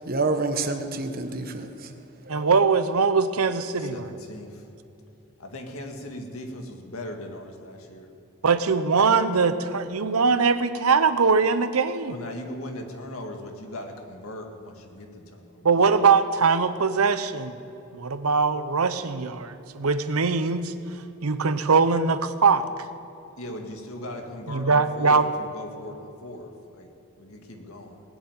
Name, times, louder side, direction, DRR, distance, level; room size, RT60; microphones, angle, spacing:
voice 1, 0.1-1.9 2.2-2.5, right 3 dB, 40° right, 1.1 m, -28 dB
voice 2, 2.3-4.1 8.4-12.2 15.6-17.5 17.9-20.7 21.2-22.6 24.5-25.2, right 5 dB, 85° right, 0.8 m, -21 dB
voice 3, 3.8-4.7 5.4-8.1 12.1-15.7 23.4-28.0, left 1 dB, 80° left, 2.0 m, -39 dB
19.5 x 7.2 x 9.1 m
head